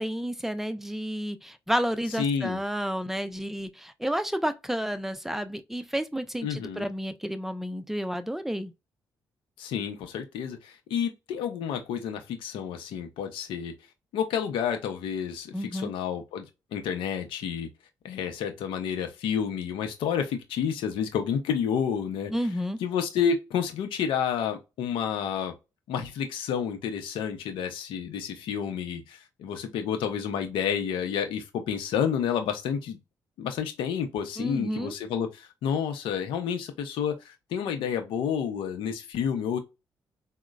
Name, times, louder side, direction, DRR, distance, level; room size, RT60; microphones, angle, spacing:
voice 1, 0.0-8.7 15.5-15.9 22.3-22.8 34.4-34.9, equal, 5° right, 0.5 m, -31 dB
voice 2, 2.2-2.6 6.4-6.9 9.6-13.7 14.1-17.7 18.0-22.3 22.8-25.5 25.9-33.0 33.4-39.6, left 7 dB, 80° left, 0.7 m, -30 dB
3.7 x 2.1 x 2.3 m
supercardioid pair, 65°, 9 cm